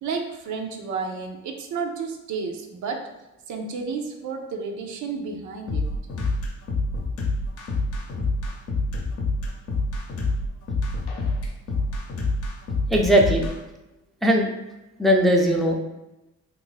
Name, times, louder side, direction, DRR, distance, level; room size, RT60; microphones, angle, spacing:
voice 1, 0.0-3.1 3.5-5.9, right 5 dB, 70° right, 3 dB, 0.6 m, -31 dB
sound 1, 5.7-13.5, left 2 dB, 50° left, 0.7 m, -26 dB
voice 2, 12.9-13.4 14.2-14.5 15.0-15.8, equal, ahead, 0 dB, 0.5 m, -18 dB
2.6 x 2.5 x 3.9 m, 0.97 s
cardioid pair, 90°, 30 cm